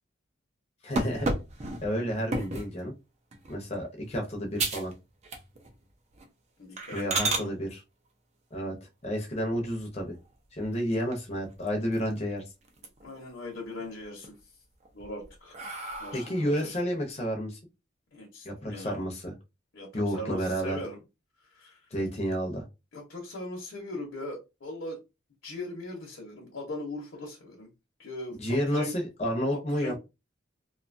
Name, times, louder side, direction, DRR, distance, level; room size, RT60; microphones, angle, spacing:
voice 1, 0.8-1.3 1.8-2.9 3.5-4.9 6.9-7.8 8.5-8.8 9.0-10.1 10.5-12.4 16.1-17.6 18.4-19.3 19.9-20.8 21.9-22.6 28.4-30.0, equal, 30° left, 2 dB, 0.7 m, -30 dB
sound 1, 1.0-2.7 3.3-3.6 4.0-4.1 4.6-4.9 5.2-5.8 6.1-6.3 6.8-7.5 9.5-10.1 10.6-10.7 11.1-11.2 11.5-12.3 12.6-13.2 13.6-14.3 14.8-16.5, right 2 dB, 35° right, 0.5 m, -33 dB
voice 2, 6.6-7.5 13.0-14.4 14.9-15.5 16.0-16.8 18.1-19.0 19.7-21.0 21.5-21.8 22.9-25.0 25.4-27.7 28.0-28.9 29.5-30.0, left 1 dB, 65° left, -2 dB, 0.8 m, -40 dB
2.6 x 2.3 x 2.6 m, 0.26 s
head